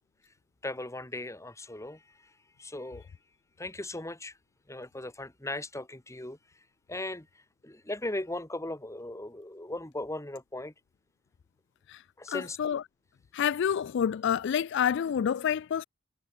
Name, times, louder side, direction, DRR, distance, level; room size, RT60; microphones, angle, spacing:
voice 1, 0.6-2.0 2.6-3.1 3.6-4.3 4.7-6.4 6.9-7.3 7.6-10.7 12.2-12.6, left 1 dB, 15° left, 2.1 m, -37 dB
voice 2, 12.3-12.8 13.3-15.8, left 8 dB, 60° left, 0.3 m, -28 dB
head